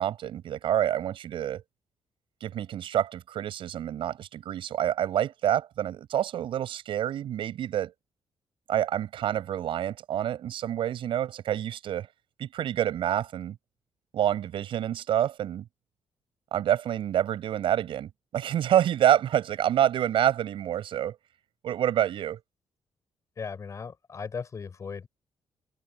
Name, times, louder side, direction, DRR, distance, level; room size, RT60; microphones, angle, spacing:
voice 1, 0.0-1.6 2.4-7.9 8.7-12.1 12.4-13.6 14.1-15.6 16.5-21.2 21.6-22.4, right 11 dB, 75° right, 7.1 m, -27 dB
voice 2, 23.4-25.1, left 5 dB, 35° left, 6.2 m, -37 dB
cardioid pair, 145°, 9 cm